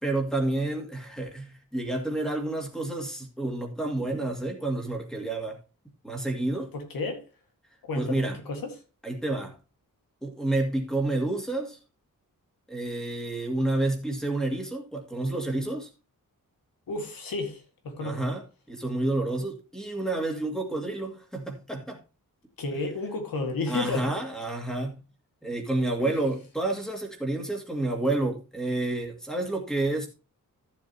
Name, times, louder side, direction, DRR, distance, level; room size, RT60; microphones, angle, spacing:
voice 1, 0.0-5.6 6.0-6.7 7.9-8.4 9.0-9.6 10.2-11.8 12.7-15.9 18.0-18.4 18.7-22.0 23.7-25.0 25.4-30.1, right 2 dB, ahead, 2.3 m, -29 dB
voice 2, 6.7-7.3 7.8-8.7 16.9-18.3 22.6-24.1 26.1-26.2, left 3 dB, 80° left, 2.0 m, -32 dB
14.0 x 7.3 x 2.9 m
wide cardioid pair, 170°, 34 cm